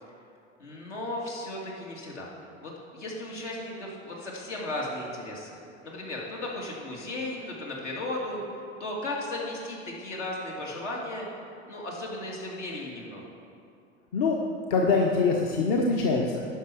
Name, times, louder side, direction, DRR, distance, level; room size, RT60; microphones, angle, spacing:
voice 1, 0.6-2.3 2.6-5.5 5.8-8.4 8.8-11.3 11.7-13.2, left 1 dB, 70° left, -2 dB, 2.4 m, -35 dB
voice 2, 14.7-16.5, left 4 dB, 50° left, 0 dB, 1.0 m, -24 dB
10.0 x 5.8 x 6.2 m, 2.5 s
figure-of-eight pair, 85°, 36 cm